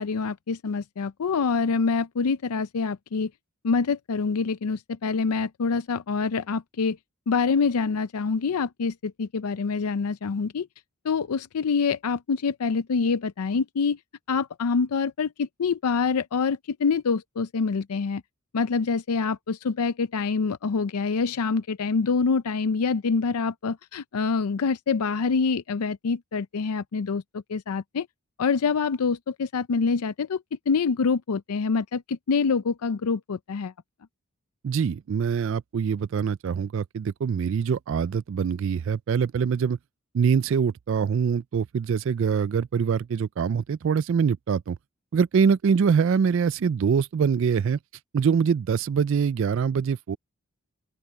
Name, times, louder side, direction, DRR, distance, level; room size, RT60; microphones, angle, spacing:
voice 1, 0.0-3.3 3.6-7.0 7.3-10.7 11.0-14.0 14.3-18.2 18.5-28.1 28.4-33.7, left 5 dB, 85° left, 0.5 m, -26 dB
voice 2, 34.6-39.8 40.1-44.8 45.1-47.8 48.1-50.2, right 6 dB, 60° right, 0.3 m, -24 dB
open air
head